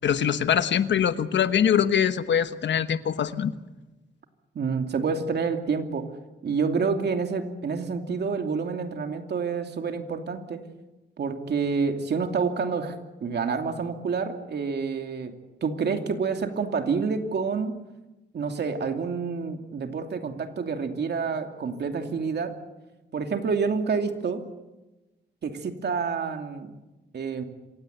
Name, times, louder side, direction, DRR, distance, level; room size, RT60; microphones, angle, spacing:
voice 1, 0.0-3.5, left 8 dB, 70° left, 12 dB, 1.2 m, -23 dB
voice 2, 4.5-6.1 6.4-10.7 11.2-15.4 15.6-17.7 18.3-22.6 23.1-24.4 25.4-26.7 27.1-27.4, right 5 dB, 60° right, 5 dB, 2.7 m, -28 dB
26.5 x 17.0 x 9.4 m, 1.1 s
cardioid pair, 110°, 19 cm